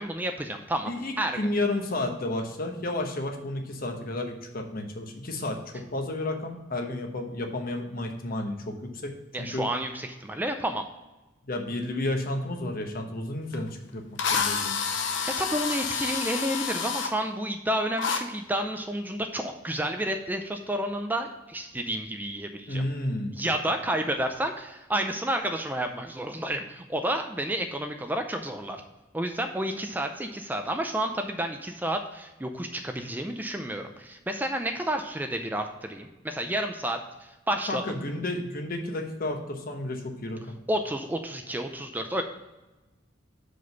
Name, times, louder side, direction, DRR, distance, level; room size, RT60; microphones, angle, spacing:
voice 1, 0.0-0.9 1.2-1.4 9.3-10.8 15.2-22.8 23.3-28.8 29.1-37.0 37.5-37.8 40.7-42.2, right 1 dB, 10° right, 5 dB, 0.4 m, -30 dB
voice 2, 0.9-9.7 11.4-14.8 22.7-23.4 37.7-40.5, left 1 dB, 50° left, 3 dB, 1.1 m, -32 dB
Drill, 13.5-13.6 14.2-17.1 18.0-18.2, left 6 dB, 70° left, 0.8 m, -28 dB
6.2 x 5.1 x 5.3 m, 1.1 s
head